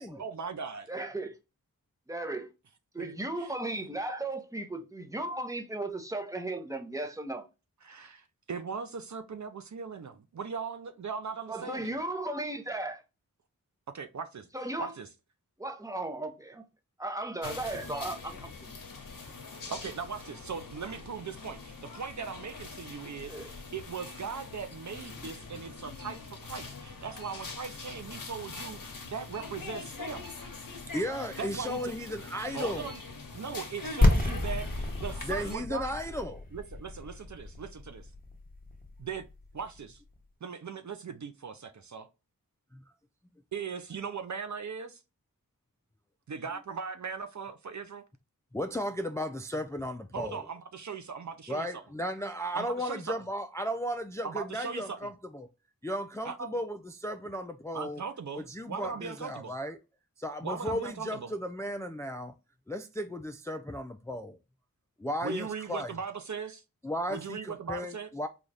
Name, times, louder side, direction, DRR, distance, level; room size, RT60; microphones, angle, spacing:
voice 1, 0.2-0.9 3.4-3.5 7.8-11.9 13.9-14.5 14.8-15.1 19.7-30.3 31.4-31.8 32.5-33.0 33.3-35.9 36.5-38.1 39.0-39.2 39.5-40.0 40.4-42.1 43.5-45.0 46.3-48.0 50.1-51.7 52.5-53.2 54.2-55.1 56.2-56.6 57.7-59.5 60.4-61.3 65.2-66.6 67.1-68.1, right 5 dB, 55° right, 0.5 m, -39 dB
voice 2, 0.9-1.4 2.1-2.5 2.9-7.5 11.5-13.0 14.5-14.9 15.6-16.6 17.0-18.7 23.3-23.5, right 2 dB, 10° right, 0.8 m, -36 dB
sound 1, 17.4-35.6, left 4 dB, 70° left, 0.9 m, -43 dB
voice 3, 30.9-32.9 35.2-36.4 42.7-42.8 48.5-50.4 51.5-55.5 55.8-58.0 58.4-59.8 60.2-62.3 62.7-64.4 65.0-66.0 66.8-68.3, equal, 10° left, 0.3 m, -35 dB
sound 2, 34.0-39.7, left 2 dB, 25° left, 1.1 m, -30 dB
4.0 x 2.3 x 3.2 m
wide cardioid pair, 65°, 35 cm